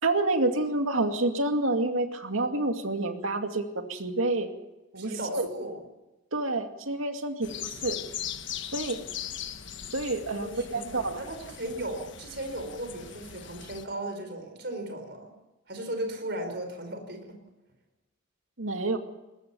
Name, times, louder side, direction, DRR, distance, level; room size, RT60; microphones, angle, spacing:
voice 1, 0.0-4.5 4.9-5.5 6.3-8.0 8.7-9.0 9.9-11.2 18.6-19.0, right 2 dB, 80° right, 5 dB, 2.3 m, -28 dB
voice 2, 4.9-5.8 10.3-15.3 15.7-17.4, right 1 dB, 55° right, 6 dB, 4.9 m, -36 dB
sound 1, 7.4-13.8, left 9 dB, 60° left, 1.4 m, -39 dB
21.5 x 19.5 x 7.1 m, 1.0 s
head